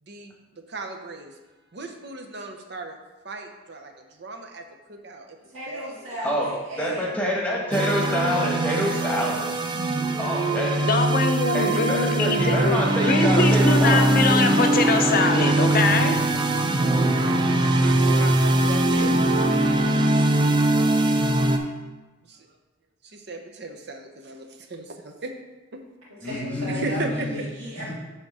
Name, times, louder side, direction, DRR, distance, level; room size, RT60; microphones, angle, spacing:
voice 1, 0.0-1.4 1.7-3.0 3.2-6.3 11.2-11.8 17.0-17.5 17.8-20.0 22.2-22.6 23.0-25.3 25.7-25.8 26.2-27.3, right 3 dB, 55° right, 4 dB, 0.7 m, -38 dB
voice 2, 5.5-7.2 26.1-27.9, equal, 80° right, -9 dB, 2.1 m, -35 dB
voice 3, 6.8-9.5 10.2-10.8 11.5-14.4 26.2-27.3, equal, 5° left, -3 dB, 1.3 m, -26 dB
sound 1, 7.7-21.6, right 2 dB, 20° right, 0.4 m, -21 dB
voice 4, 10.9-12.8 13.1-16.2, left 4 dB, 45° left, 5 dB, 0.6 m, -23 dB
sound 2, 15.2-20.0, left 7 dB, 85° left, 0.7 m, -42 dB
6.6 x 3.7 x 6.2 m, 1.1 s
head